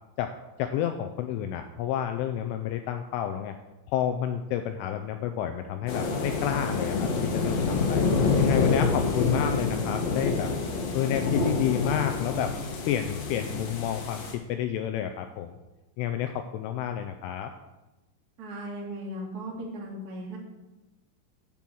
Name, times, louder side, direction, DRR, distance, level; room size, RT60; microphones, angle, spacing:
voice 1, 0.6-3.5 3.9-7.1 7.3-8.0 8.4-10.5 10.9-12.5 12.9-15.6 16.0-17.5, left 10 dB, 85° left, 7 dB, 2.9 m, -30 dB
sound 1, 5.9-14.3, left 4 dB, 65° left, 2.4 m, -27 dB
voice 2, 18.4-20.4, right 1 dB, 55° right, -3 dB, 1.0 m, -37 dB
10.5 x 6.1 x 7.7 m, 1.1 s
omnidirectional pair, 6.0 m